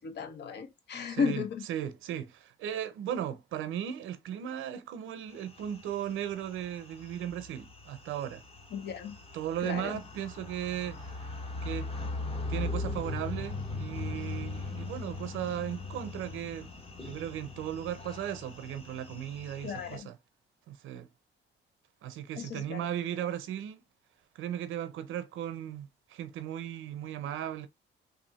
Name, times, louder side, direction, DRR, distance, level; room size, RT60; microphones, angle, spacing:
voice 1, 0.0-1.7 8.7-9.2 9.6-10.0 19.6-20.1 22.3-22.9, left 5 dB, 60° left, 0.9 m, -34 dB
voice 2, 1.1-1.4 1.7-8.4 9.3-11.9 12.5-16.7 17.0-20.2 20.7-21.1 22.0-23.8 24.3-27.7, right 10 dB, 85° right, 0.6 m, -36 dB
sound 1, 5.4-20.0, left 3 dB, 30° left, 1.0 m, -40 dB
3.4 x 2.6 x 4.0 m
cardioid pair, 90°, 20 cm